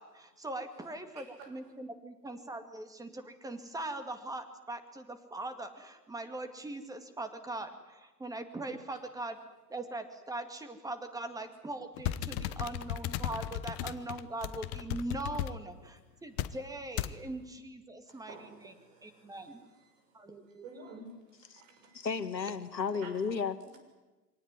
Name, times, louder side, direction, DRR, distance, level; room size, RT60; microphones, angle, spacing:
voice 1, 0.0-9.4 9.7-18.7 19.0-19.6 20.1-20.7, right 2 dB, 5° right, 8 dB, 2.3 m, -41 dB
voice 2, 1.1-1.5 18.1-19.4 20.6-21.1 21.4-22.1 22.9-23.1, right 4 dB, 50° right, 6 dB, 6.5 m, -51 dB
sound 1, 12.0-15.6 16.4-16.5 17.0-17.2, left 12 dB, 30° left, 0.9 m, -35 dB
voice 3, 21.9-23.6, left 5 dB, 80° left, 12 dB, 1.6 m, -33 dB
24.5 x 18.5 x 9.8 m, 1.1 s
figure-of-eight pair, 105°, 50 cm